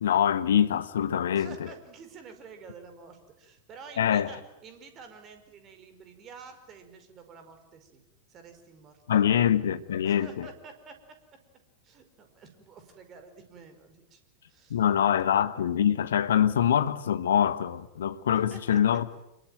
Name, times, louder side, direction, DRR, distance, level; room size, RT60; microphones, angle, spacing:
voice 1, 0.0-1.5 4.0-4.3 9.1-10.5 14.7-19.1, left 9 dB, 65° left, 1.3 m, -24 dB
voice 2, 1.3-8.0 8.3-9.4 10.0-11.2 11.8-14.2 14.5-14.8 18.5-18.8, right 5 dB, 30° right, 5.2 m, -49 dB
27.0 x 23.0 x 9.3 m
figure-of-eight pair, 90°, 0 cm